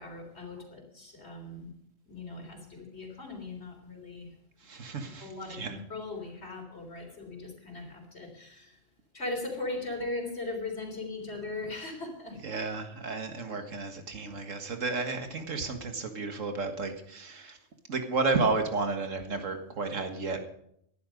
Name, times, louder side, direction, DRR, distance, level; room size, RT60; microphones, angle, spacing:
voice 1, 0.0-1.7 2.1-4.3 5.2-8.7 9.1-12.4, left 2 dB, 55° left, 2 dB, 3.8 m, -39 dB
voice 2, 4.6-5.8 12.4-17.6 17.9-20.5, right 3 dB, 80° right, 6 dB, 2.0 m, -32 dB
18.5 x 11.5 x 5.3 m, 0.72 s
omnidirectional pair, 1.3 m